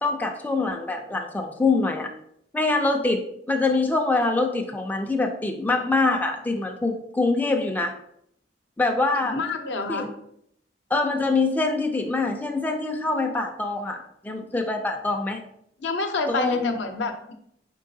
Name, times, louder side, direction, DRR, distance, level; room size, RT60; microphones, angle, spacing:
voice 1, 0.0-2.1 2.5-3.2 3.5-7.9 8.8-9.4 9.9-10.1 10.9-15.4 16.3-16.8, left 3 dB, 10° left, 2 dB, 0.3 m, -24 dB
voice 2, 9.3-10.1 15.8-17.3, left 3 dB, 75° left, 6 dB, 0.6 m, -28 dB
4.5 x 3.8 x 2.7 m, 0.73 s
head